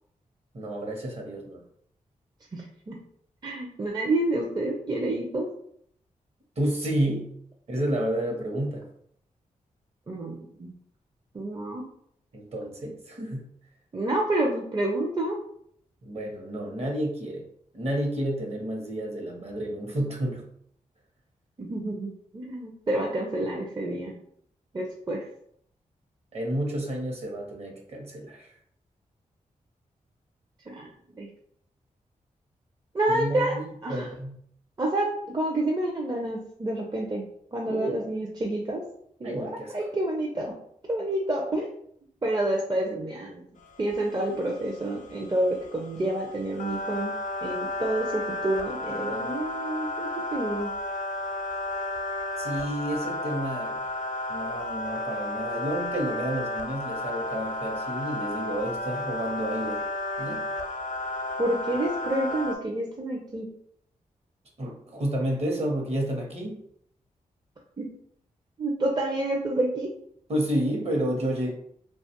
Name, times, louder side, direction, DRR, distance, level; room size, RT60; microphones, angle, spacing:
voice 1, 0.5-1.6 6.6-7.3 7.7-8.8 12.3-13.5 16.0-17.5 17.7-20.5 26.3-28.5 33.1-34.4 37.7-38.0 39.2-39.7 52.4-53.8 54.3-59.8 60.2-60.5 64.6-66.6 70.3-71.5, right 1 dB, 45° right, 0 dB, 0.9 m, -30 dB
voice 2, 2.5-3.0 3.4-5.5 10.1-10.7 11.3-11.8 13.9-15.4 21.6-24.2 24.7-25.2 30.7-30.9 31.2-31.3 32.9-33.5 33.8-34.1 34.8-37.2 37.5-38.8 39.2-40.5 40.9-41.7 42.2-43.4 43.8-47.1 47.4-50.7 61.4-63.5 67.8-67.9 68.6-69.9, right 1 dB, 30° right, 0 dB, 0.5 m, -28 dB
sound 1, 43.7-62.6, left 2 dB, 60° left, 0.4 m, -33 dB
2.5 x 2.3 x 2.8 m, 0.67 s
cardioid pair, 50°, 14 cm